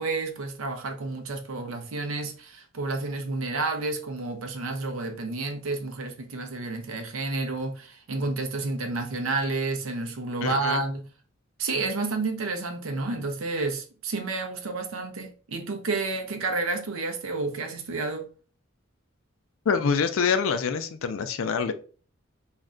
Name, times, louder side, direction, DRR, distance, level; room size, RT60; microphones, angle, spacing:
voice 1, 0.0-11.1 11.6-18.3, right 3 dB, 80° right, 0.5 m, -30 dB
voice 2, 10.4-10.8 19.7-21.7, left 5 dB, 75° left, 0.4 m, -25 dB
2.4 x 2.1 x 3.6 m
head